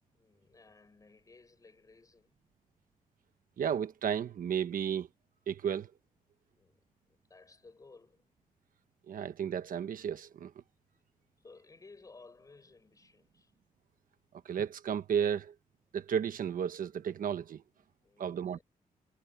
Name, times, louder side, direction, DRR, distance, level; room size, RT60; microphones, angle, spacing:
voice 1, 0.1-2.4 6.6-8.2 11.4-13.5 18.0-18.6, left 3 dB, 25° left, 7.0 m, -58 dB
voice 2, 3.6-5.1 5.5-5.9 9.1-10.5 14.4-15.5 15.9-17.6 18.2-18.6, right 8 dB, 70° right, 1.2 m, -33 dB
wide cardioid pair, 180°, 15 cm